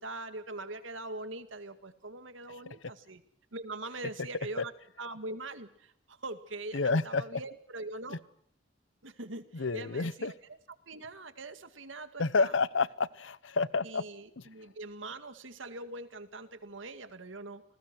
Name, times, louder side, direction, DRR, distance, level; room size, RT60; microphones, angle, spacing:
voice 1, 0.0-3.2 3.5-4.7 5.0-8.2 9.0-10.6 10.9-12.6 13.8-17.6, right 2 dB, 80° right, 2.0 m, -42 dB
voice 2, 6.7-7.4 8.1-8.2 9.5-10.3 12.2-14.0, left 4 dB, 80° left, 0.9 m, -29 dB
28.5 x 20.0 x 6.1 m
head